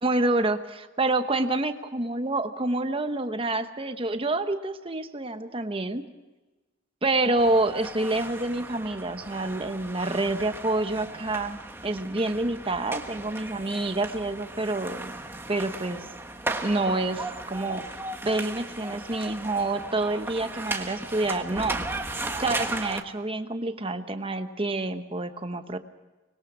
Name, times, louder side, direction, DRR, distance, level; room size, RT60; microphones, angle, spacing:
voice 1, 0.0-0.6 1.0-6.0 7.0-15.1 15.5-16.0 16.6-17.8 18.2-21.8 22.4-25.8, right 2 dB, 30° right, 9 dB, 1.1 m, -27 dB
sound 1, 7.4-23.0, right 2 dB, 10° right, 1.4 m, -36 dB
25.0 x 21.0 x 6.2 m, 1.2 s
head